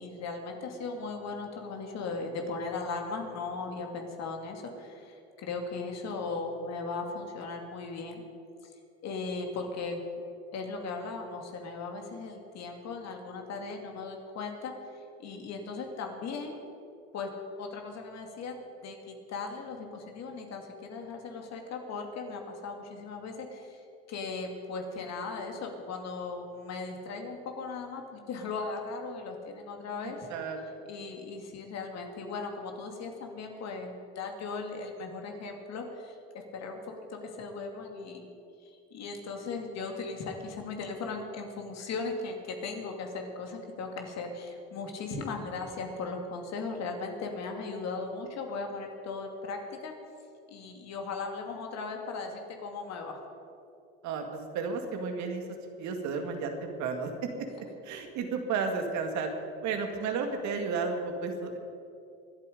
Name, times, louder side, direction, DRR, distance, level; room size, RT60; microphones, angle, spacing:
voice 1, 0.0-8.2 9.0-10.0 10.5-16.6 17.1-17.3 17.6-23.8 24.1-30.3 30.9-38.3 38.6-49.9 50.5-53.2, left 4 dB, 55° left, 3 dB, 2.7 m, -38 dB
voice 2, 30.3-30.8 54.0-55.4 55.8-57.1 57.8-59.3 59.6-61.6, right 5 dB, 65° right, 4 dB, 2.1 m, -32 dB
23.0 x 8.5 x 5.3 m, 2.6 s
supercardioid pair, 80°, 31 cm